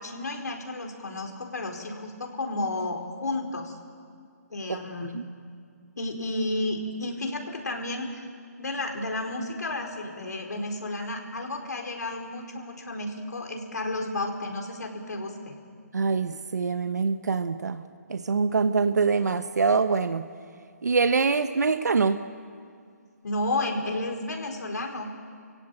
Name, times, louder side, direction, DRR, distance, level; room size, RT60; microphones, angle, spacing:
voice 1, 0.0-3.7 4.5-5.1 6.0-8.2 8.6-15.6 23.2-25.1, left 2 dB, 80° left, 2 dB, 4.4 m, -32 dB
voice 2, 4.7-5.2 15.9-17.8 18.1-20.3 20.8-22.2, right 4 dB, 80° right, 9 dB, 1.1 m, -24 dB
28.0 x 16.5 x 9.0 m, 2.2 s
hypercardioid pair, 180°, 9 cm